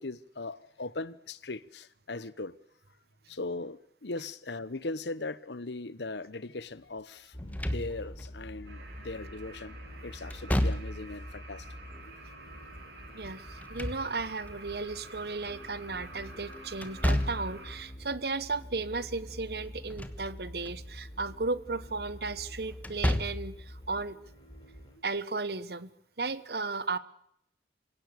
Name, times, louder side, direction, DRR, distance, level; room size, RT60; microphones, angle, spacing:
voice 1, 0.0-2.5 3.3-11.7, left 3 dB, 75° left, 1.1 m, -39 dB
sound 1, 7.3-25.0, equal, 25° left, 3.8 m, -47 dB
Slam / Thump thud, 7.4-8.3 10.3-11.2 13.4-14.5 16.8-17.6 19.7-20.3 20.7-20.8 22.8-23.6, left 1 dB, 10° left, 1.3 m, -31 dB
sound 2, 8.6-17.8, right 2 dB, 75° right, 7.9 m, -49 dB
voice 2, 13.1-24.2 25.0-25.9 26.2-27.0, right 3 dB, 60° right, 1.1 m, -35 dB
26.5 x 17.0 x 6.8 m
head